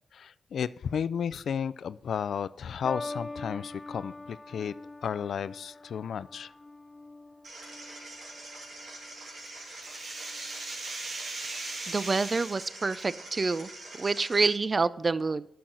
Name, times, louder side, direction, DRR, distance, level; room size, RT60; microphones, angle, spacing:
voice 1, 0.1-4.7 5.0-6.5, left 7 dB, 80° left, 0.3 m, -33 dB
sound 1, 2.8-9.4 10.2-10.6, left 2 dB, 25° left, 0.5 m, -44 dB
sound 2, 7.4-14.4, right 2 dB, 80° right, 3.3 m, -45 dB
sound 3, 8.9-12.7, right 2 dB, 60° right, 2.0 m, -39 dB
voice 2, 11.9-13.7 13.9-15.5, right 4 dB, 40° right, 0.4 m, -27 dB
10.0 x 6.1 x 3.9 m
cardioid pair, 80°, 0 cm